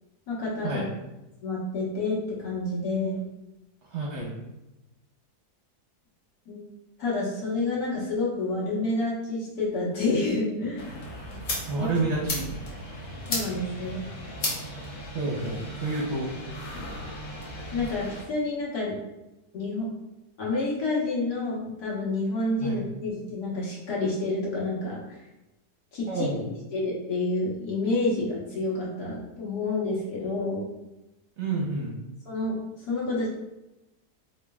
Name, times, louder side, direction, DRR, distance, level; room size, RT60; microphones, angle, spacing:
voice 1, 0.3-0.8 1.4-3.2 6.5-6.6 7.0-10.9 11.7-11.9 13.3-14.1 17.7-18.9 19.5-19.9 20.4-25.0 25.9-26.5 26.7-30.7 32.3-32.6 32.9-33.3, left 2 dB, 75° left, -5 dB, 1.6 m, -29 dB
voice 2, 3.9-4.3 11.7-12.5 15.1-16.3 22.6-22.8 26.1-26.4 31.4-31.9, right 3 dB, 55° right, -3 dB, 0.9 m, -29 dB
sound 1, 10.8-18.2, left 1 dB, 50° left, 1.1 m, -35 dB
4.3 x 3.1 x 2.3 m, 0.96 s
omnidirectional pair, 1.7 m